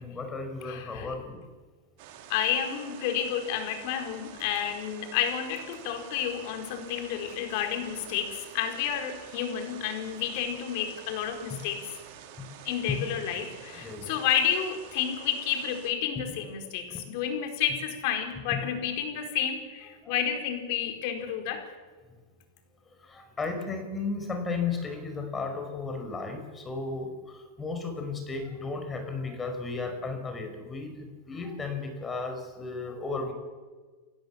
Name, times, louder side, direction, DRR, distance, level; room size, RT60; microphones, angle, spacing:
voice 1, 0.0-1.4 13.8-14.1 20.0-20.1 23.0-33.3, left 4 dB, 20° left, 6 dB, 5.2 m, -34 dB
voice 2, 0.6-1.1 2.3-11.9 12.6-21.7, left 9 dB, 60° left, 5 dB, 4.7 m, -30 dB
sound 1, 2.0-15.9, right 9 dB, 60° right, 4.1 m, -48 dB
30.0 x 16.0 x 7.3 m, 1.4 s
hypercardioid pair, 125°, 0 cm